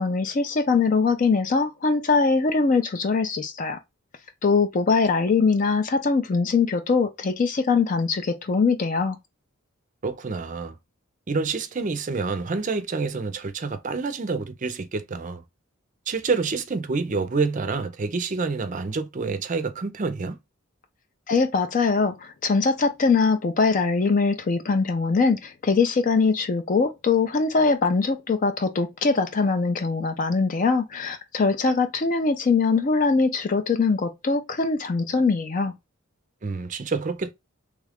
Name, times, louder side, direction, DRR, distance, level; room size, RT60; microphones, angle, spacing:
voice 1, 0.0-3.8 4.4-9.2 21.3-35.7, left 4 dB, 40° left, 0.4 m, -22 dB
voice 2, 10.0-10.8 11.3-15.4 16.1-20.4 36.4-37.3, right 4 dB, 35° right, 0.5 m, -28 dB
3.2 x 2.4 x 3.3 m
head